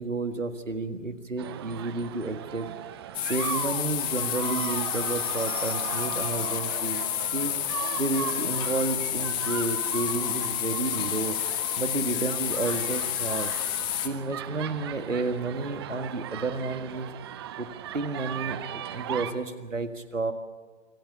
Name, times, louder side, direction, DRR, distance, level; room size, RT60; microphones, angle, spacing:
voice 1, 0.0-2.7 3.2-7.0 7.3-7.5 8.0-11.4 11.8-13.5 14.0-17.1 17.6-17.7 17.9-20.3, right 3 dB, 85° right, 8 dB, 1.9 m, -31 dB
sound 1, 1.4-19.3, right 11 dB, 20° right, 0.6 m, -38 dB
sound 2, 3.1-14.1, left 14 dB, 15° left, 0.8 m, -30 dB
25.5 x 15.5 x 6.9 m, 1.4 s
figure-of-eight pair, 130°, 37 cm